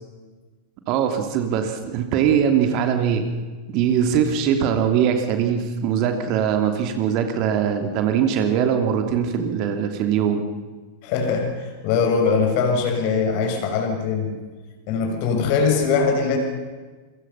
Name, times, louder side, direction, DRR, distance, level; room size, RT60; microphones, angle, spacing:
voice 1, 0.9-3.3 3.7-10.4, right 8 dB, 40° right, 6 dB, 2.8 m, -21 dB
voice 2, 11.0-14.4 14.9-16.4, left 5 dB, 45° left, 3 dB, 6.1 m, -21 dB
28.0 x 24.5 x 5.7 m, 1.4 s
figure-of-eight pair, 90°, 0 cm